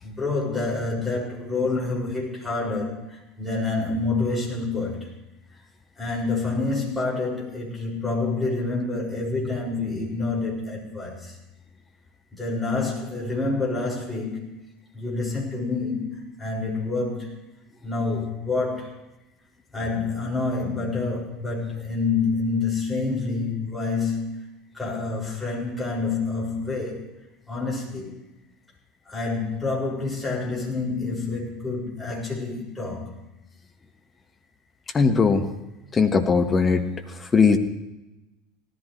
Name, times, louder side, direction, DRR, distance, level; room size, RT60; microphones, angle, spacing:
voice 1, 0.0-5.1 6.0-11.4 12.3-14.6 14.9-17.3 17.8-19.0 19.7-24.4 24.7-27.1 27.5-28.1 29.1-33.1, left 3 dB, 5° left, -5 dB, 6.5 m, -27 dB
voice 2, 34.9-35.5 35.9-37.6, left 5 dB, 25° left, 5 dB, 1.4 m, -20 dB
18.5 x 14.0 x 3.4 m, 0.98 s
figure-of-eight pair, 75°, 0 cm